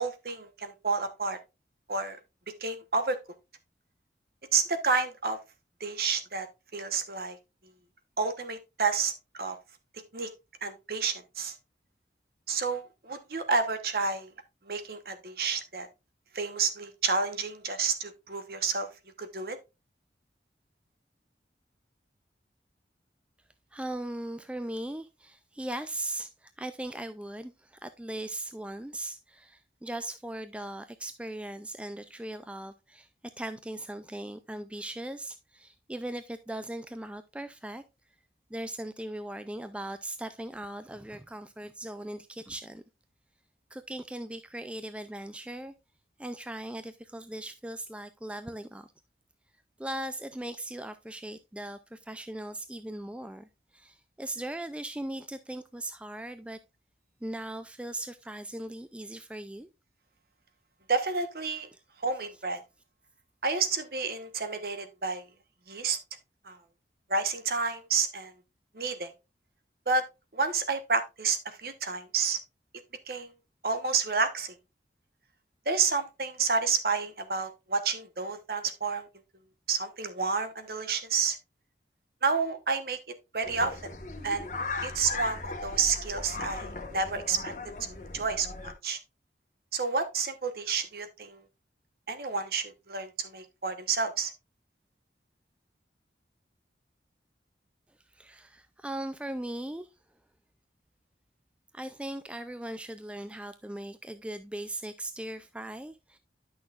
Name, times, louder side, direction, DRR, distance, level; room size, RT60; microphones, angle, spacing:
voice 1, 0.0-1.4 1.9-2.2 2.6-3.2 4.5-5.4 5.8-6.5 6.7-7.4 8.2-9.1 9.4-9.6 10.1-10.3 10.6-11.5 12.5-14.3 14.7-15.9 16.3-18.9 19.2-19.6 60.9-61.7 62.0-62.6 63.4-65.2 65.7-66.0 66.4-66.6 67.1-68.3 68.7-69.1 69.9-70.0 70.3-72.4 73.1-73.3 73.6-74.5 75.7-79.1 79.7-81.4 82.2-83.0 83.3-83.9 84.2-84.5 84.8-87.5 88.0-89.0 89.7-91.4 92.1-94.3, right 4 dB, 55° right, 1.0 m, -30 dB
voice 2, 23.7-33.1 33.4-37.8 38.5-42.8 43.7-45.7 46.2-48.9 49.8-53.5 53.7-56.6 57.2-59.7 98.1-99.9 101.7-106.2, right 1 dB, 5° right, 0.3 m, -39 dB
sound 1, 83.4-88.7, left 3 dB, 45° left, 1.3 m, -38 dB
10.5 x 6.1 x 2.4 m
head